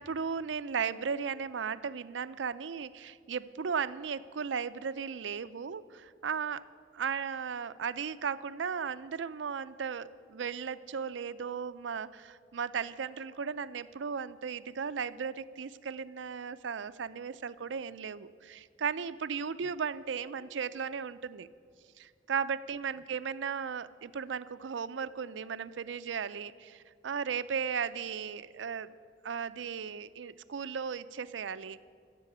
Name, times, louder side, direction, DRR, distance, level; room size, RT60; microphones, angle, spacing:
voice 1, 0.0-6.6 6.9-21.5 22.0-28.9 29.2-31.8, right 6 dB, 90° right, 15 dB, 0.5 m, -36 dB
15.5 x 7.6 x 8.6 m, 2.3 s
head